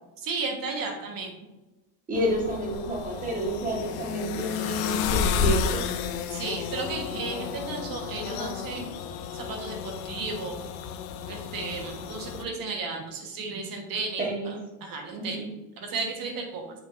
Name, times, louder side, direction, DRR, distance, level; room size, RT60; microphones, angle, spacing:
voice 1, 0.2-1.3 6.3-8.9 9.4-10.6 11.3-14.3 14.8-15.5 15.9-16.7, right 4 dB, 45° right, 3 dB, 1.5 m, -34 dB
sound 1, 2.1-12.4, left 7 dB, 85° left, 0.8 m, -32 dB
voice 2, 2.1-5.8 14.2-14.5 15.1-15.4, equal, 15° right, -1 dB, 1.6 m, -29 dB
7.6 x 6.0 x 2.6 m, 1.1 s
cardioid pair, 140°, 48 cm